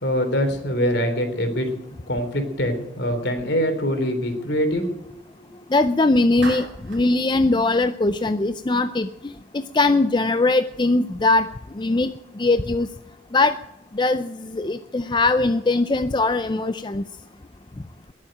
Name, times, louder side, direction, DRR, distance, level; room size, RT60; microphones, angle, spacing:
voice 1, 0.0-1.7 2.1-4.9 5.4-5.6, equal, 60° left, 6 dB, 3.6 m, -24 dB
voice 2, 5.7-11.5 11.7-12.9 13.3-13.6 13.9-17.0, left 2 dB, 25° left, 10 dB, 0.5 m, -21 dB
Clapping, 6.4-7.1, right 4 dB, 65° right, 3.2 m, -35 dB
21.0 x 7.4 x 8.8 m, 0.90 s
head